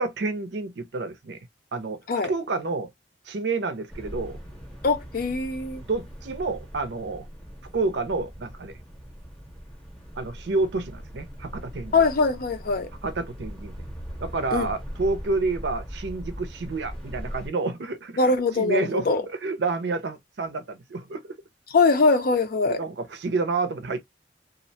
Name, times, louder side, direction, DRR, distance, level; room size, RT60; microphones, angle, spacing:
voice 1, 0.0-1.4 1.7-2.9 3.3-4.4 5.8-7.3 7.7-8.8 10.2-11.9 13.0-13.8 14.2-21.4 22.7-24.0, right 3 dB, 70° right, 0.5 m, -29 dB
sound 1, 3.9-17.5, equal, 5° left, 0.7 m, -40 dB
voice 2, 4.8-5.8 11.9-12.9 14.5-14.7 18.2-19.2 21.7-22.8, left 3 dB, 55° left, 0.5 m, -22 dB
2.4 x 2.1 x 2.6 m
head